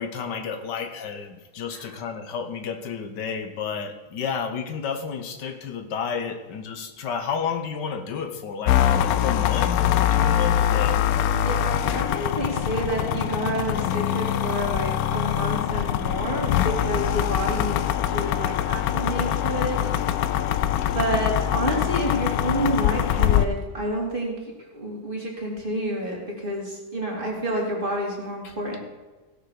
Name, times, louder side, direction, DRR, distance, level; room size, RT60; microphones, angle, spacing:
voice 1, 0.0-11.0 20.8-20.9 28.4-28.5, left 6 dB, 90° left, 7 dB, 1.7 m, -31 dB
sound 1, 8.7-23.5, left 11 dB, 70° left, 1.0 m, -23 dB
voice 2, 11.3-19.8 20.9-24.3 24.6-28.8, right 1 dB, 30° right, -2 dB, 2.9 m, -29 dB
16.5 x 5.8 x 6.5 m, 1.2 s
omnidirectional pair, 1.8 m